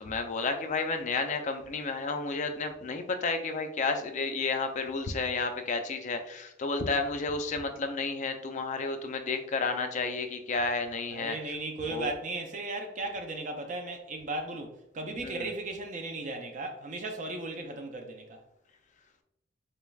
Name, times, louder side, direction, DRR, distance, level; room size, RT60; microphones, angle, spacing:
voice 1, 0.0-11.5 11.9-12.1 15.2-15.5, left 3 dB, 35° left, 0.3 m, -31 dB
voice 2, 11.1-18.4, right 2 dB, 35° right, 0.4 m, -36 dB
4.0 x 3.2 x 2.3 m
head